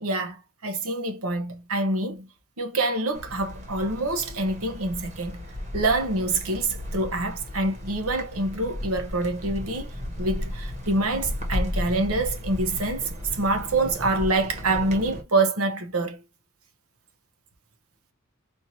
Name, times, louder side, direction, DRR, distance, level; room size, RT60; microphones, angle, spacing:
voice 1, 0.0-2.3 2.6-5.4 5.7-16.2, right 2 dB, 75° right, 1.0 m, -26 dB
sound 1, 3.1-15.2, left 1 dB, 35° right, 1.3 m, -34 dB
4.4 x 2.7 x 2.8 m
head